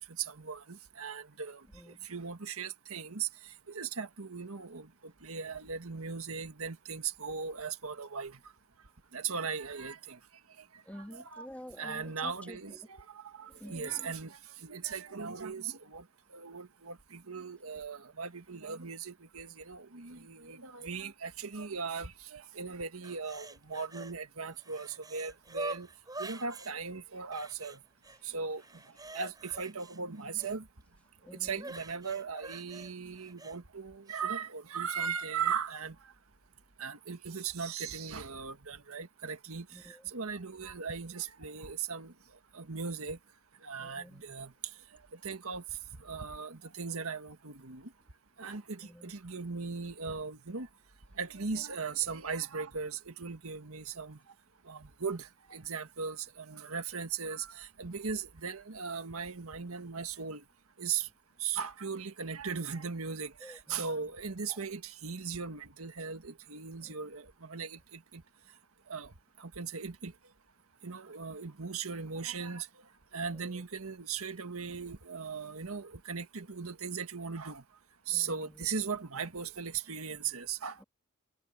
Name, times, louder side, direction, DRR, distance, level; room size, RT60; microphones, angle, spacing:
voice 1, 0.0-8.4 9.1-10.2 10.6-10.7 10.9-11.5 11.8-16.0 16.3-25.9 26.2-27.8 28.2-28.6 29.1-30.7 31.4-35.9 36.8-42.1 42.5-43.2 43.6-44.5 45.1-45.6 46.0-47.9 48.4-50.7 51.2-54.2 54.6-60.4 60.8-61.1 61.4-68.2 68.9-69.1 69.4-70.1 70.8-72.7 73.1-77.6 78.1-80.8, right 5 dB, 85° right, 1.7 m, -38 dB
voice 2, 1.7-2.1 10.9-12.9 13.4-14.1 28.2-28.4 31.2-31.7 39.7-40.1 43.8-44.2 48.8-49.1 63.4-64.1 64.5-64.6 66.8-67.0 73.3-73.5 78.1-78.7, equal, 5° left, 2.4 m, -50 dB
sound 1, 23.0-24.1 24.5-26.7 27.3-28.2 28.5-30.6 31.6-33.6 34.1-34.2, right 2 dB, 20° right, 7.3 m, -45 dB
head